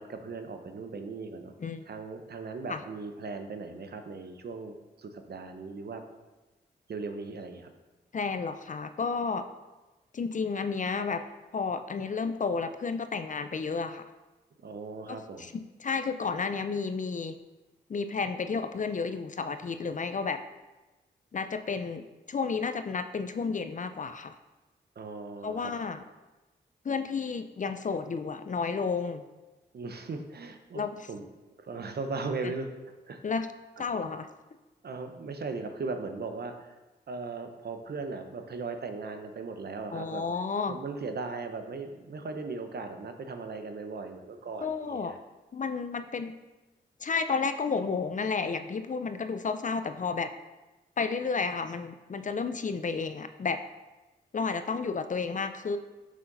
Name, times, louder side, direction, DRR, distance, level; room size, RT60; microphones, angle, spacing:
voice 1, 0.0-1.5 1.8-6.0 6.9-7.7 14.6-15.5 25.0-25.7 29.7-31.3 31.6-32.7 33.1-33.2 34.8-36.8 37.1-40.2 40.7-45.2, right 4 dB, 60° right, 6 dB, 0.8 m, -38 dB
voice 2, 8.1-9.5 10.1-11.2 11.5-14.0 15.1-15.5 15.8-17.4 17.9-20.4 21.3-24.3 25.4-26.0 26.8-29.2 30.7-31.1 32.4-32.5 33.2-33.5 33.8-34.3 39.9-40.8 44.6-45.1 45.5-46.4 47.0-50.3 51.0-53.6 54.3-55.8, left 5 dB, 40° left, 10 dB, 0.5 m, -31 dB
6.3 x 5.6 x 4.0 m, 1.1 s
supercardioid pair, 40°, 19 cm